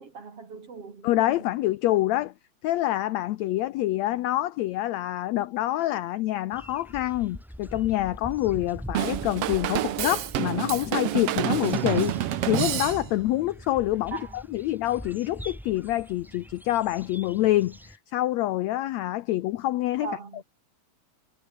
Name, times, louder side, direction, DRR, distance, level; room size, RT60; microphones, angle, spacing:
voice 1, 0.0-1.4 14.1-14.4 20.0-20.4, right 5 dB, 45° right, 4.1 m, -39 dB
voice 2, 1.0-2.3 2.6-20.1, left 15 dB, 80° left, 1.6 m, -26 dB
sound 1, 6.5-18.0, equal, ahead, 6.0 m, -43 dB
Drum kit / Drum, 8.9-13.3, right 13 dB, 70° right, 1.4 m, -28 dB
omnidirectional pair, 3.9 m